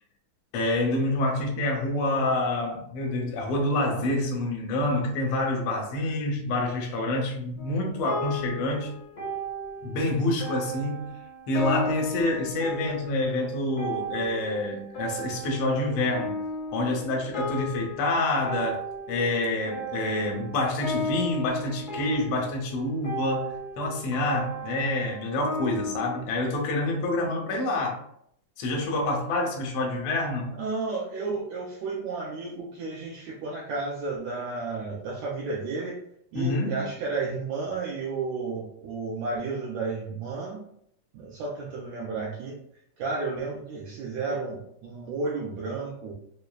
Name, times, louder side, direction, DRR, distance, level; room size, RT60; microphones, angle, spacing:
voice 1, 0.5-8.9 9.8-11.2 11.5-16.4 16.7-18.8 19.1-28.0 28.6-30.5 36.3-36.8, left 2 dB, 80° left, 0 dB, 1.4 m, -27 dB
Sad piano, 7.6-26.2, equal, 65° left, 0.9 m, -35 dB
voice 2, 30.6-36.0 36.3-40.6 41.1-42.6 43.0-46.1, right 3 dB, 80° right, -3 dB, 1.7 m, -32 dB
6.4 x 2.1 x 2.3 m, 0.70 s
omnidirectional pair, 3.8 m